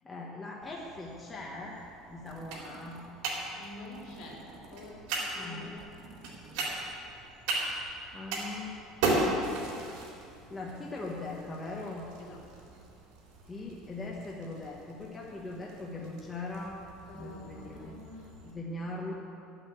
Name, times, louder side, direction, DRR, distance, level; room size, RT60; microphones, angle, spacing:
voice 1, 0.0-1.8 2.1-3.0 5.3-5.8 7.7-7.8 8.1-8.8 10.5-12.1 13.5-16.8 17.1-17.9 18.4-19.1, left 2 dB, 15° left, -3 dB, 1.2 m, -40 dB
sound 1, 0.6-18.5, right 2 dB, 75° right, 3.8 m, -38 dB
sound 2, 2.3-3.1 3.8-4.9 5.8-7.0, right 3 dB, 40° right, 1.8 m, -52 dB
voice 2, 3.5-4.4 4.7-5.7 12.2-12.7 17.1-18.3, left 2 dB, 50° left, -1 dB, 3.3 m, -48 dB
11.5 x 9.0 x 8.2 m, 2.6 s
cardioid pair, 170°, 0 cm